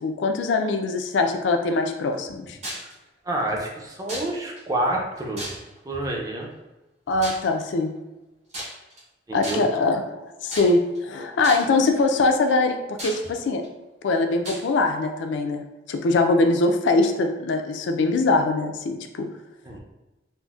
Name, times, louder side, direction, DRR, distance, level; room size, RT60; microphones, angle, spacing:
voice 1, 0.0-2.6 7.1-7.9 9.3-10.2 10.4-13.6 14.0-19.3, left 3 dB, 75° left, 6 dB, 0.3 m, -22 dB
sound 1, 2.6-2.9 4.1-4.6 5.4-5.9 7.2-7.5 8.5-9.0 9.4-9.8 10.5-11.0 11.4-11.8 12.5-12.6 13.0-13.7 14.4-14.7, equal, 40° right, 0.8 m, -35 dB
voice 2, 3.2-5.5 5.8-6.5 9.3-9.7 19.6-19.8, right 1 dB, 20° right, -1 dB, 0.5 m, -28 dB
3.8 x 2.0 x 2.3 m, 1.1 s
head